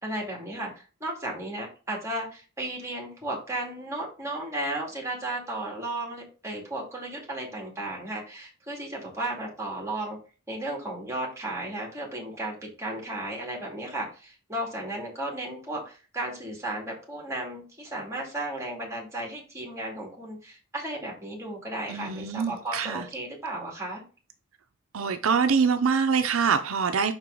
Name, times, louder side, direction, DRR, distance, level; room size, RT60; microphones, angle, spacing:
voice 1, 0.0-10.2 10.5-24.0, right 1 dB, 15° right, 2.2 m, -34 dB
voice 2, 21.9-23.0 24.9-27.1, right 5 dB, 75° right, 0.5 m, -24 dB
5.9 x 4.5 x 3.8 m
head